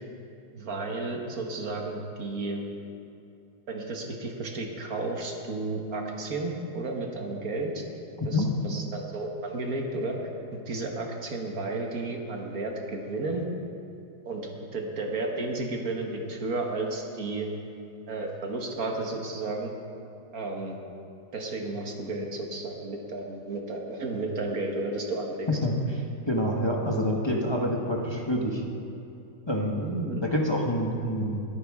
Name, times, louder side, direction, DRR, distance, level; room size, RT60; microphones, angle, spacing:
voice 1, 0.5-2.6 3.7-7.8 8.2-10.2 10.5-13.4 14.2-17.5 18.1-19.7 20.3-20.8 21.3-25.5 29.7-30.2, right 2 dB, 50° right, 1 dB, 1.7 m, -32 dB
voice 2, 8.2-8.5 25.6-26.0 26.3-28.6 29.5-29.8 30.2-31.4, equal, 20° left, -1 dB, 0.8 m, -27 dB
21.5 x 9.6 x 3.6 m, 2.7 s
omnidirectional pair, 2.1 m